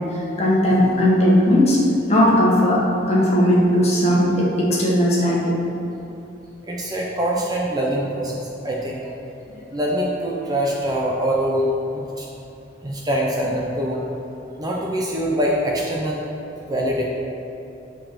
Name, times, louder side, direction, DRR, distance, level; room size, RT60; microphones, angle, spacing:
voice 1, 0.1-1.8 2.1-2.8 3.1-5.5 9.5-9.8, equal, 35° left, -5 dB, 1.6 m, -17 dB
voice 2, 6.6-9.1 9.7-11.7 11.9-12.3 12.8-14.0 14.6-16.2 16.7-17.0, equal, 20° right, -3 dB, 0.8 m, -24 dB
9.3 x 4.5 x 5.9 m, 2.9 s
head